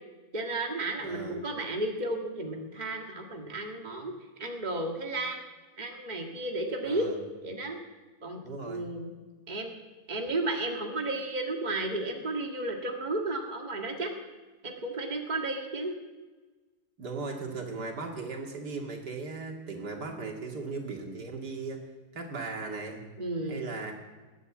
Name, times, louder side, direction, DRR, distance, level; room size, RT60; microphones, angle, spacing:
voice 1, 0.3-5.4 5.8-7.1 7.4-7.8 8.2-9.1 9.5-9.7 10.1-14.1 14.6-16.0 23.2-23.6, right 2 dB, 25° right, 1 dB, 1.9 m, -33 dB
voice 2, 1.0-1.5 6.8-7.2 8.4-8.8 17.0-21.8 22.1-23.0 23.5-23.9, right 4 dB, 85° right, 1 dB, 2.8 m, -37 dB
20.5 x 8.1 x 8.5 m, 1.3 s
omnidirectional pair, 1.7 m